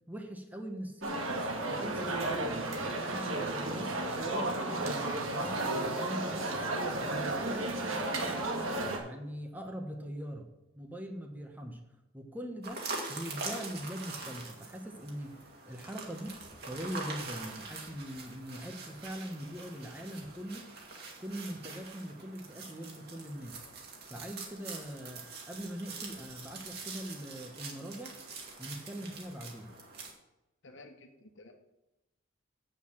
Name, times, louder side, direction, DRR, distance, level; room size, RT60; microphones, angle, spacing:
voice 1, 0.1-1.3 1.7-2.6 3.0-6.6 7.0-10.5 10.7-11.8 12.1-12.8 13.1-16.4 16.6-20.7 21.2-23.6 24.1-28.2 28.6-29.7, equal, 10° right, 3 dB, 1.1 m, -42 dB
sound 1, 1.0-9.0, right 2 dB, 85° right, 1.9 m, -33 dB
sound 2, 12.6-30.1, right 4 dB, 50° right, 2.2 m, -44 dB
voice 2, 30.6-31.5, left 2 dB, 65° left, 5 dB, 1.3 m, -53 dB
8.2 x 6.6 x 7.2 m, 0.96 s
head